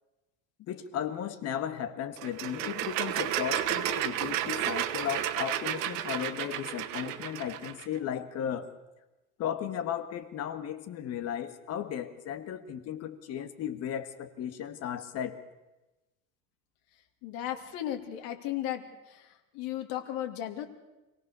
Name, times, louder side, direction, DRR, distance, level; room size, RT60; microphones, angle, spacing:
voice 1, 0.7-8.7 9.4-15.4, left 9 dB, 40° left, 10 dB, 1.6 m, -35 dB
sound 1, 2.2-7.9, right 12 dB, 85° right, 1.5 m, -32 dB
voice 2, 17.2-18.8 19.5-20.7, left 12 dB, 65° left, 4 dB, 2.7 m, -34 dB
26.0 x 17.5 x 6.8 m, 1.0 s
cardioid pair, 160°, 39 cm